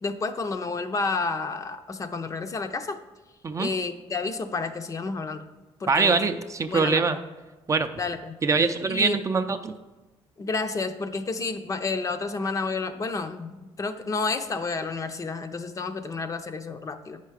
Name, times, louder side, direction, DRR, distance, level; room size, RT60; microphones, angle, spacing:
voice 1, 0.0-3.0 3.6-5.4 5.8-6.2 6.7-7.2 8.0-8.4 8.9-9.2 10.4-17.2, left 4 dB, 30° left, 9 dB, 0.5 m, -30 dB
voice 2, 5.9-7.2 7.7-7.9 8.4-9.7, right 4 dB, 30° right, 8 dB, 0.4 m, -23 dB
8.7 x 5.7 x 4.8 m, 1.1 s
cardioid pair, 115°, 11 cm